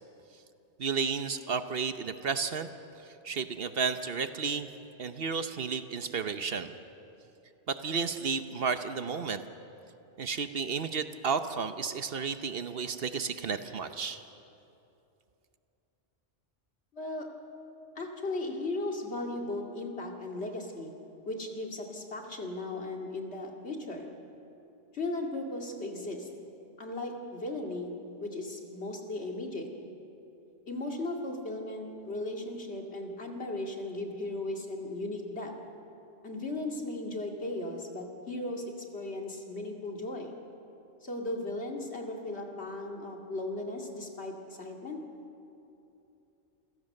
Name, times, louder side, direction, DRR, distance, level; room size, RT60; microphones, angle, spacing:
voice 1, 0.8-2.7 3.0-4.7 5.0-6.7 7.7-9.4 10.2-14.2, right 5 dB, 60° right, 10 dB, 1.0 m, -32 dB
voice 2, 16.9-17.3 18.0-20.9 21.3-24.1 24.9-26.3 26.8-27.9 28.2-29.7 30.7-35.5 36.2-40.4 41.0-45.0, left 2 dB, 65° left, 1 dB, 2.6 m, -36 dB
28.0 x 16.0 x 6.6 m, 2.8 s
omnidirectional pair, 1.2 m